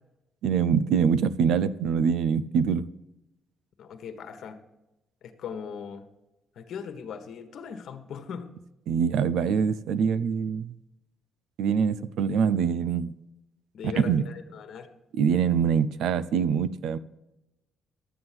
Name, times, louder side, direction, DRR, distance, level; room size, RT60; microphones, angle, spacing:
voice 1, 0.4-2.9 8.9-10.7 11.6-13.1 14.0-14.2 15.2-17.0, right 7 dB, 80° right, 16 dB, 0.5 m, -24 dB
voice 2, 3.8-4.6 5.2-6.1 6.5-8.5 13.7-14.9, left 7 dB, 70° left, 8 dB, 1.3 m, -39 dB
12.0 x 7.9 x 5.9 m, 0.95 s
cardioid pair, 90°, 0 cm